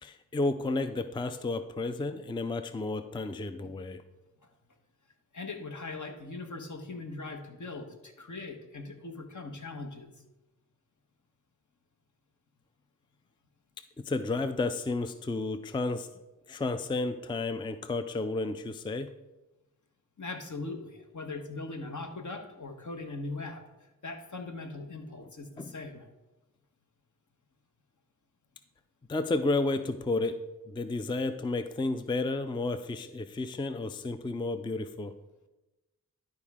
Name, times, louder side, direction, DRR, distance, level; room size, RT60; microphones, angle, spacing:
voice 1, 0.0-4.0 14.0-16.1 16.5-19.1 25.6-25.7 29.1-30.4 30.7-35.2, left 2 dB, 15° left, 10 dB, 0.4 m, -32 dB
voice 2, 5.3-10.1 20.2-23.6 24.0-26.1, left 3 dB, 55° left, 4 dB, 1.3 m, -40 dB
11.5 x 4.6 x 3.6 m, 1.0 s
cardioid pair, 45°, 36 cm